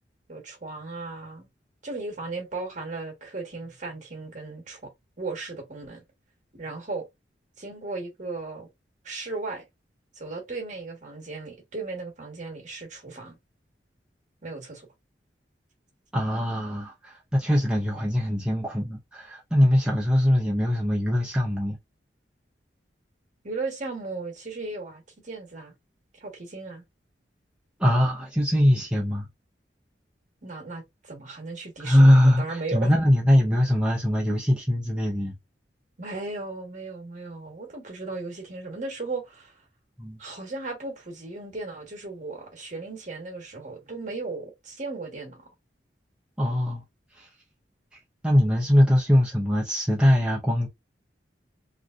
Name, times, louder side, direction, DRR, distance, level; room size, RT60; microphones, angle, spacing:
voice 1, 0.3-1.5 1.8-4.9 5.2-6.0 6.5-7.0 7.6-8.7 9.0-9.6 10.1-13.4 14.4-14.9 23.4-25.7 26.2-26.8 30.4-32.9 36.0-39.5 40.2-45.5, right 3 dB, 40° right, 1.2 m, -36 dB
voice 2, 16.1-21.8 27.8-29.3 31.8-35.3 40.0-40.2 46.4-46.8 47.1-47.3 47.9-50.7, equal, 5° right, 0.6 m, -22 dB
3.2 x 2.6 x 2.4 m
head